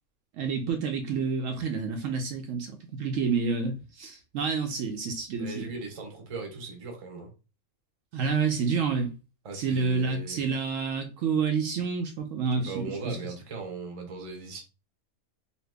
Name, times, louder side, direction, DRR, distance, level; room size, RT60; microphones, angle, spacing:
voice 1, 0.3-5.7 8.1-9.1 9.5-13.2, right 5 dB, 70° right, 0.9 m, -29 dB
voice 2, 5.4-7.3 9.4-10.4 12.6-14.6, right 3 dB, 30° right, 0.6 m, -38 dB
2.9 x 2.7 x 3.3 m
omnidirectional pair, 1.5 m